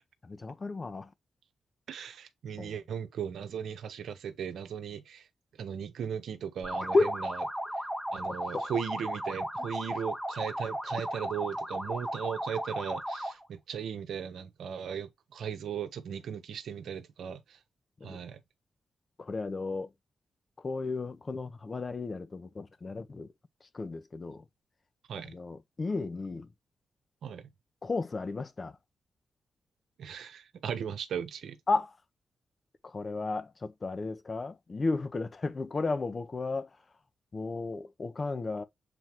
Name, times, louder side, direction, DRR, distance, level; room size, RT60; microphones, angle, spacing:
voice 1, 0.2-1.1 2.6-2.7 6.9-7.1 8.5-8.7 9.6-9.7 18.0-18.2 19.2-19.9 20.6-23.3 23.6-24.5 25.2-26.5 27.8-28.8 31.7-32.0 32.8-36.8 37.3-38.6, left 3 dB, 40° left, 1.2 m, -33 dB
voice 2, 1.9-5.3 5.6-7.4 8.1-17.6 18.0-18.4 25.1-25.4 27.2-27.5 30.0-31.6, right 8 dB, 85° right, 1.1 m, -37 dB
sound 1, 6.6-13.4, equal, ahead, 1.7 m, -35 dB
7.8 x 4.2 x 3.1 m
cardioid pair, 70°, 0 cm